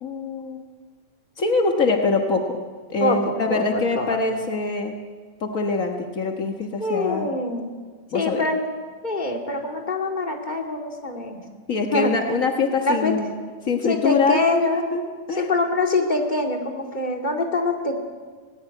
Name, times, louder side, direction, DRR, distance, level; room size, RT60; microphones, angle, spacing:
voice 1, 0.0-0.6 1.4-2.6 2.9-4.9 5.4-7.3 8.1-8.5 11.7-13.3 13.6-15.0 15.3-15.5, left 3 dB, 65° left, 3 dB, 0.8 m, -24 dB
voice 2, 3.5-4.2 6.8-7.7 8.1-8.6 9.0-11.4 11.9-12.1 12.8-13.1 13.9-14.9 15.4-18.0, left 2 dB, 15° left, 1 dB, 2.0 m, -24 dB
18.5 x 16.0 x 10.0 m, 1.5 s
omnidirectional pair, 3.6 m